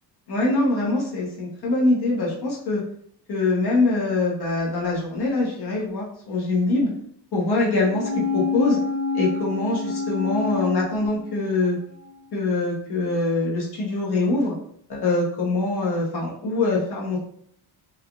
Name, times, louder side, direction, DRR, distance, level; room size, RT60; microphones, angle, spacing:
voice 1, 0.3-2.8 3.3-6.9 7.3-8.8 9.1-11.8 12.3-14.6 14.9-17.2, left 2 dB, 70° left, -4 dB, 0.9 m, -23 dB
sound 1, 7.9-11.7 12.0-12.1, left 4 dB, 40° right, 0.5 m, -27 dB
3.4 x 2.3 x 2.3 m, 0.66 s
wide cardioid pair, 170°, 41 cm